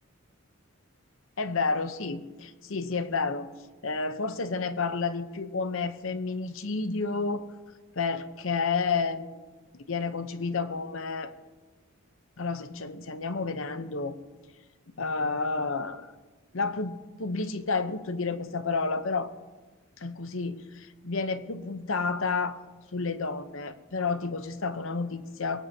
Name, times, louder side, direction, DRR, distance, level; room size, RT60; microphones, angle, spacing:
voice 1, 1.4-3.5 3.8-7.5 7.9-9.5 9.7-11.3 12.4-14.1 15.0-16.1 16.5-19.3 20.0-22.6 22.9-25.6, left 4 dB, 65° left, 11 dB, 0.8 m, -30 dB
22.5 x 17.5 x 2.8 m, 1.3 s
head